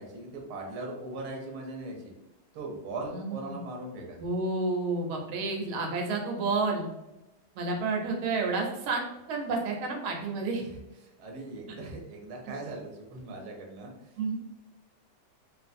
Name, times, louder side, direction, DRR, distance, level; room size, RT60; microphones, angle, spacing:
voice 1, 0.0-2.1 2.5-4.2 10.6-14.1, right 2 dB, 65° right, 0 dB, 1.0 m, -40 dB
voice 2, 3.1-3.6 4.2-6.9 7.6-9.0 9.3-10.6 14.2-14.4, right 3 dB, 90° right, 2 dB, 1.5 m, -30 dB
3.2 x 2.5 x 2.5 m, 0.94 s
omnidirectional pair, 2.2 m